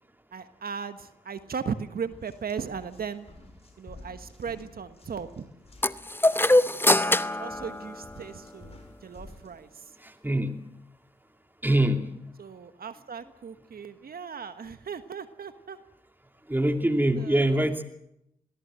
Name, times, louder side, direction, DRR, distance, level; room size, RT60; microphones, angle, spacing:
voice 1, 0.3-3.3 3.8-5.5 6.9-9.9 12.4-15.8 17.2-17.8, right 6 dB, 65° right, 10 dB, 1.4 m, -37 dB
sound 1, 1.4-1.6 2.0-9.5, left 2 dB, 40° left, 6.0 m, -51 dB
sound 2, 5.8-8.5, left 1 dB, 15° left, 0.9 m, -24 dB
voice 2, 10.0-10.5 11.6-12.1 16.5-17.8, right 1 dB, 10° right, 5 dB, 2.7 m, -24 dB
22.5 x 17.0 x 7.7 m, 0.81 s
supercardioid pair, 40°, 17 cm